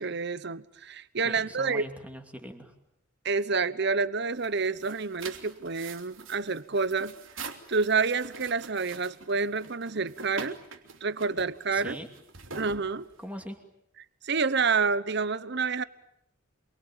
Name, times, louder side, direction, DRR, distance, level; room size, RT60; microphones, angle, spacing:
voice 1, 0.0-1.8 3.2-7.1 7.7-10.6 11.0-12.0 12.5-13.1 14.2-15.8, right 4 dB, 55° right, 16 dB, 1.0 m, -28 dB
voice 2, 1.2-2.7 11.7-12.1 13.2-13.6, equal, 5° right, 4 dB, 2.7 m, -41 dB
sound 1, 4.3-13.5, right 4 dB, 80° right, 3.1 m, -45 dB
28.0 x 23.5 x 9.0 m, 0.78 s
head